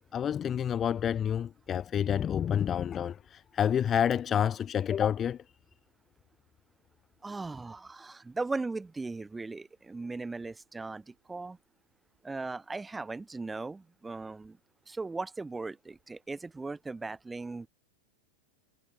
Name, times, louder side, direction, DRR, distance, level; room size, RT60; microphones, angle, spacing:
voice 1, 0.0-5.4, left 9 dB, 25° left, 1.0 m, -29 dB
voice 2, 7.2-11.6 12.2-14.6 14.9-17.7, right 3 dB, 10° right, 5.0 m, -38 dB
figure-of-eight pair, 90°, 0 cm